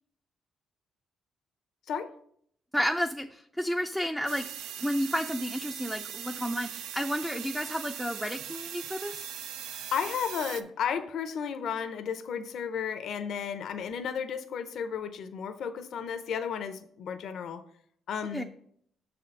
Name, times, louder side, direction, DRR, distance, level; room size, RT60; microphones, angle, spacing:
voice 1, 2.7-4.5 4.8-9.3 18.3-18.4, equal, 5° right, 4 dB, 0.4 m, -31 dB
sound 1, 4.3-10.6, right 9 dB, 90° right, 0.4 m, -40 dB
voice 2, 9.9-17.6 18.1-18.4, left 7 dB, 70° left, 9 dB, 0.6 m, -33 dB
6.3 x 4.3 x 5.2 m, 0.65 s
cardioid pair, 90°, 0 cm